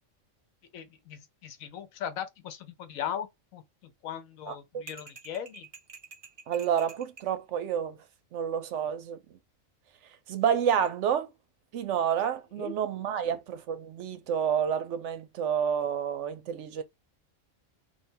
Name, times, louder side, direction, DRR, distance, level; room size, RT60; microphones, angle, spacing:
voice 1, 0.7-5.7 12.6-12.7, left 9 dB, 90° left, 1.1 m, -38 dB
voice 2, 4.5-4.8 6.5-8.0 8.3-9.4 10.3-11.3 11.7-16.8, right 8 dB, 70° right, 0.8 m, -29 dB
sound 1, 4.9-7.3, right 5 dB, 45° right, 0.4 m, -48 dB
2.5 x 2.3 x 4.1 m
omnidirectional pair, 1.4 m